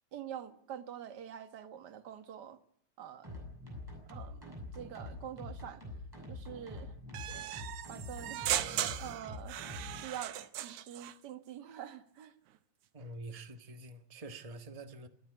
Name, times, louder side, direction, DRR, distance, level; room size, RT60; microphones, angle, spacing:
voice 1, 0.1-2.6 3.0-3.3 4.1-5.8 6.3-6.9 7.9-8.5 9.0-9.6 9.9-12.3, right 9 dB, 45° right, 1.5 m, -46 dB
sound 1, 3.2-10.0, left 2 dB, 5° right, 8.0 m, -45 dB
sound 2, 7.1-11.2, right 12 dB, 75° right, 2.3 m, -37 dB
voice 2, 12.9-15.1, right 2 dB, 25° right, 0.7 m, -46 dB
27.0 x 11.0 x 9.7 m
omnidirectional pair, 3.5 m